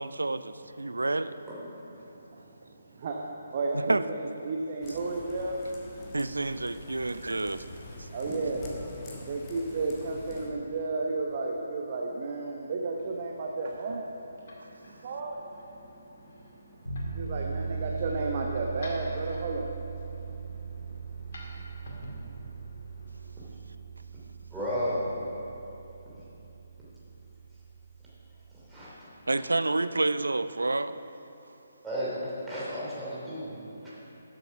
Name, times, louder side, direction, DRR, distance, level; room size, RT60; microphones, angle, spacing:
voice 1, 0.0-1.4 3.7-4.0 6.1-7.7 8.0-8.1 29.3-31.0, right 2 dB, 70° right, 0.4 m, -29 dB
voice 2, 2.0-5.6 8.1-21.8 22.1-22.5, right 3 dB, 35° right, 0.9 m, -34 dB
sound 1, 4.8-10.5, left 2 dB, 20° left, 1.4 m, -45 dB
sound 2, 12.7-23.3, left 1 dB, 45° left, 2.1 m, -51 dB
sound 3, 16.8-28.7, right 5 dB, 90° left, 2.3 m, -39 dB
voice 3, 24.5-25.0 28.5-29.1 31.8-33.9, equal, 5° right, 3.0 m, -34 dB
12.5 x 7.8 x 5.8 m
figure-of-eight pair, 140°, 0 cm